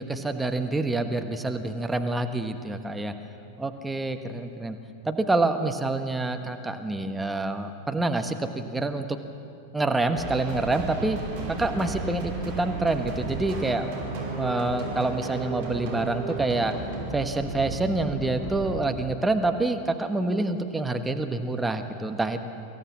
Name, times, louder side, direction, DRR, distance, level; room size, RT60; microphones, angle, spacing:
voice 1, 0.0-3.1 3.6-4.8 5.0-9.2 9.7-11.2 11.5-13.9 14.3-16.7 17.1-22.4, right 2 dB, 10° right, 7 dB, 1.3 m, -27 dB
sound 1, 10.1-18.9, right 3 dB, 50° right, 5.2 m, -34 dB
24.5 x 16.0 x 7.3 m, 2.5 s
figure-of-eight pair, 90°, 0 cm